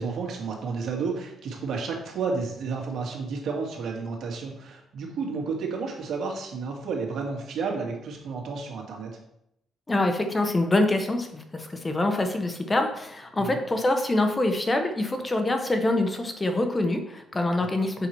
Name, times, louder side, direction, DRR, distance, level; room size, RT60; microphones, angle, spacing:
voice 1, 0.0-9.1 13.4-13.6 17.6-17.9, right 4 dB, 70° right, 0 dB, 2.2 m, -31 dB
voice 2, 9.9-18.1, left 2 dB, 20° left, 5 dB, 1.1 m, -25 dB
6.9 x 5.8 x 4.7 m, 0.78 s
cardioid pair, 90°, 0 cm